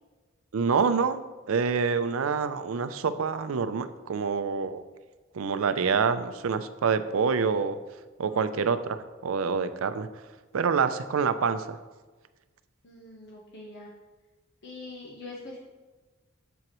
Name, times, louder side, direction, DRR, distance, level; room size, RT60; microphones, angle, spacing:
voice 1, 0.5-1.2 1.5-4.8 5.3-7.8 8.2-9.0 9.2-10.1 10.5-11.8, right 5 dB, 80° right, 12 dB, 0.5 m, -26 dB
voice 2, 8.3-8.7 12.8-13.9 14.6-15.6, left 2 dB, 55° left, -3 dB, 1.0 m, -44 dB
7.7 x 7.1 x 3.0 m, 1.3 s
head